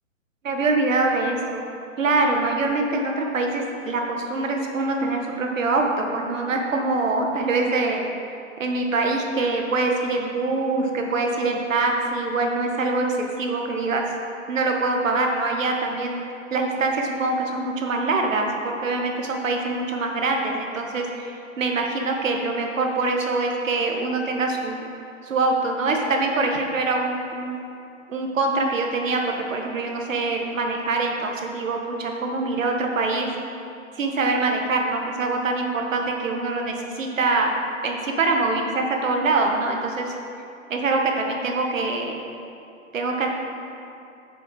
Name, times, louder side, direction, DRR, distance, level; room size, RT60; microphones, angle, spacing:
voice 1, 0.4-1.6 2.0-8.0 8.6-14.0 14.5-16.2 16.5-24.9 25.2-27.6 28.1-33.3 33.9-37.5 37.8-40.1 40.7-42.2 42.9-43.3, right 3 dB, 70° right, 2 dB, 1.5 m, -24 dB
7.8 x 6.9 x 4.8 m, 2.6 s
hypercardioid pair, 170°, 40 cm